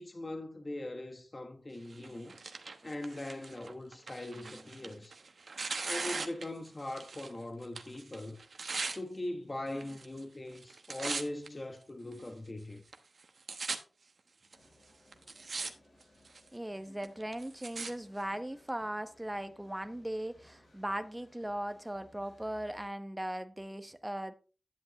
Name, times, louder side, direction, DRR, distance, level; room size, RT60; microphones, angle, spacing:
voice 1, 0.0-2.4 2.8-5.1 5.8-8.4 8.9-12.8 16.9-17.0, left 1 dB, 40° left, 1.3 m, -41 dB
Tearing, 1.9-7.4 7.6-9.0 9.7-10.2 10.5-11.5 12.1-12.2 12.9-13.0 13.2-13.8 14.5-14.6 15.1-15.7 16.0-16.5 17.0-17.9 18.7-18.8, right 4 dB, 75° right, 1.0 m, -40 dB
sound 1, 14.5-22.9, left 1 dB, 65° left, 5.3 m, -63 dB
voice 2, 16.5-24.3, right 1 dB, 15° right, 1.0 m, -38 dB
10.5 x 7.8 x 3.0 m
cardioid pair, 45°, 0 cm